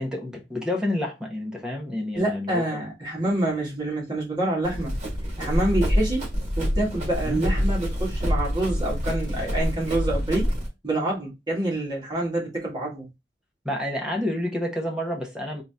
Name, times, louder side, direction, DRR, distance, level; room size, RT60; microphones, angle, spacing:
voice 1, 0.0-2.7 7.2-7.4 13.6-15.6, left 1 dB, 5° right, 1.1 m, -29 dB
voice 2, 2.2-4.9 5.4-6.2 6.6-10.5 10.8-13.1, right 1 dB, 25° right, 1.9 m, -27 dB
Run, 4.6-10.7, equal, 40° right, 1.8 m, -26 dB
3.9 x 2.7 x 3.6 m
head